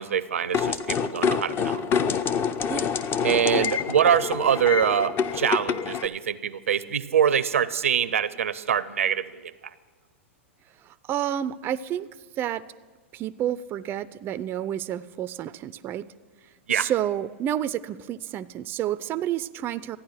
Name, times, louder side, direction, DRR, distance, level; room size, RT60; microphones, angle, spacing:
voice 1, 0.0-2.1 3.2-9.5 16.7-16.9, right 8 dB, 85° right, 17 dB, 0.5 m, -24 dB
sound 1, 0.5-6.1, left 7 dB, 30° left, 0.6 m, -26 dB
voice 2, 10.8-12.1 12.4-12.6 13.1-16.1 16.7-20.0, right 11 dB, 30° right, 15 dB, 0.4 m, -30 dB
13.5 x 9.4 x 6.5 m, 1.4 s
hypercardioid pair, 110°, 7 cm